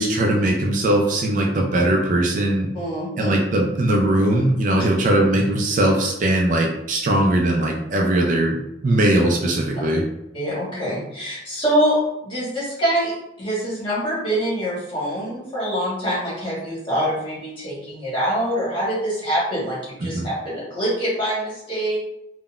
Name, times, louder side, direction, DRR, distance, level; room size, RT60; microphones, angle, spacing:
voice 1, 0.0-2.7 3.2-8.6 8.8-10.0 20.1-20.2, right 1 dB, 40° right, 0 dB, 0.3 m, -20 dB
voice 2, 2.7-3.3 4.7-4.8 10.3-22.0, equal, 25° left, -8 dB, 1.2 m, -25 dB
3.7 x 2.1 x 2.3 m, 0.88 s
head